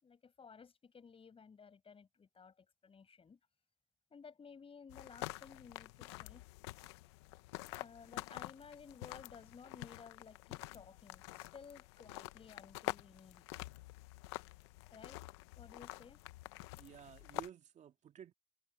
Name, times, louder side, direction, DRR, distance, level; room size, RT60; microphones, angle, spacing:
voice 1, 0.0-3.4 4.1-6.4 7.7-13.5 14.9-15.2 15.6-16.2, left 5 dB, 45° left, 5.7 m, -56 dB
sound 1, 4.9-17.5, left 21 dB, 85° left, 1.2 m, -47 dB
voice 2, 16.8-18.3, right 9 dB, 60° right, 2.3 m, -54 dB
hypercardioid pair, 50°, 14 cm